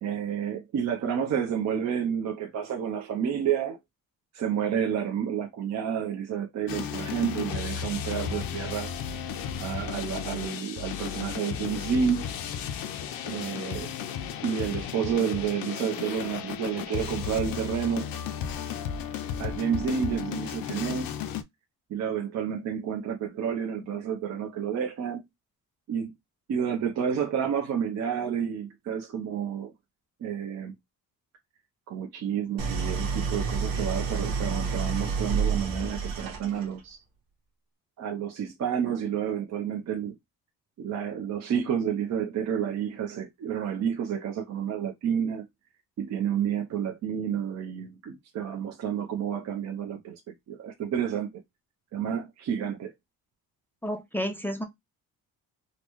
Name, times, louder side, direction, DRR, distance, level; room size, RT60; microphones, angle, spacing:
voice 1, 0.0-3.8 4.3-8.9 9.6-12.3 13.2-13.9 14.4-18.1 19.4-21.1 21.9-25.2 25.9-26.1 26.5-29.7 30.2-30.7 31.9-37.0 38.0-40.2 40.8-45.5 46.0-51.4 51.9-52.9, right 8 dB, 50° right, 0.6 m, -30 dB
sound 1, 6.7-21.4, left 8 dB, 75° left, 0.5 m, -34 dB
Idling, 32.6-36.8, right 5 dB, 80° right, 1.1 m, -29 dB
voice 2, 53.8-54.6, equal, 5° left, 0.4 m, -31 dB
3.9 x 2.1 x 3.0 m
cardioid pair, 160°, 35 cm